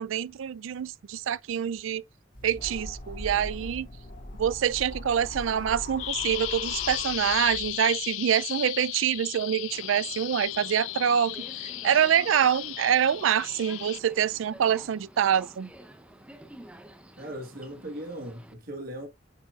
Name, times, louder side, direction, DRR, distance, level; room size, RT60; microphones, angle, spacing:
voice 1, 0.0-2.0 2.4-3.9 4.4-15.7, right 9 dB, 80° right, 0.4 m, -26 dB
sound 1, 2.3-7.7, left 1 dB, 45° left, 2.0 m, -40 dB
Bird vocalization bird call bird song, 6.0-14.0, left 17 dB, 75° left, 0.4 m, -35 dB
Subway metro underground, 9.6-18.5, right 1 dB, 5° right, 0.7 m, -50 dB
voice 2, 17.2-19.1, right 1 dB, 50° right, 1.4 m, -38 dB
8.5 x 5.6 x 2.4 m
head